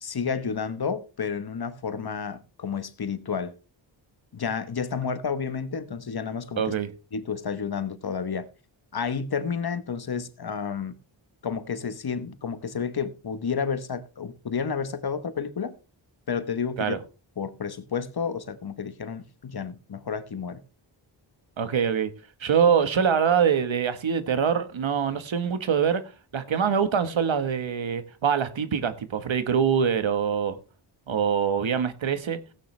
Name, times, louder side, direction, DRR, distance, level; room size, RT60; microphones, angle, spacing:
voice 1, 0.0-3.5 4.3-6.7 7.1-8.5 8.9-10.9 11.4-15.7 16.3-17.0 17.4-20.6, left 6 dB, 50° left, 1.1 m, -31 dB
voice 2, 6.6-6.9 16.8-17.0 21.6-22.1 22.4-26.0 26.3-30.6 31.1-32.4, right 7 dB, 75° right, 1.4 m, -24 dB
16.5 x 9.0 x 3.3 m
wide cardioid pair, 90°, 47 cm